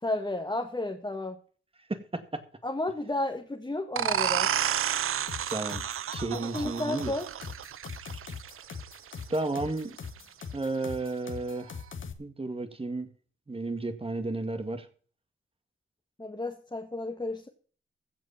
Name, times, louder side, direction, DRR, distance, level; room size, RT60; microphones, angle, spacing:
voice 1, 0.0-1.4 2.6-4.5 6.3-7.3 16.2-17.5, left 2 dB, 20° left, 1.7 m, -32 dB
voice 2, 1.9-2.4 5.5-5.8 6.1-7.1 9.3-9.9 10.5-11.7 12.2-13.1 13.5-14.9, right 2 dB, 25° right, 2.2 m, -32 dB
sound 1, 4.0-9.4, right 10 dB, 90° right, 0.6 m, -31 dB
sound 2, 5.3-12.1, left 6 dB, 65° left, 1.9 m, -41 dB
15.5 x 5.2 x 8.7 m
cardioid pair, 85°, 21 cm